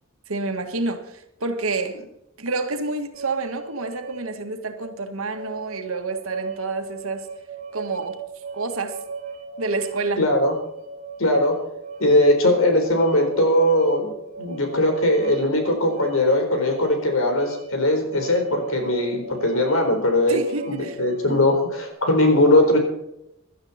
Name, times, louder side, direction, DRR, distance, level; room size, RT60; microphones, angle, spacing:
voice 1, 0.3-2.0 2.4-7.3 7.7-8.2 8.5-8.9 9.6-10.2 20.3-21.4 22.6-22.7, right 3 dB, 85° right, 6 dB, 1.8 m, -28 dB
sound 1, 3.1-21.9, right 4 dB, 35° right, 2.1 m, -37 dB
voice 2, 10.2-10.5 11.2-11.6 12.0-20.4 20.7-22.8, left 1 dB, 75° left, 4 dB, 4.2 m, -20 dB
17.0 x 12.0 x 4.3 m, 0.84 s
head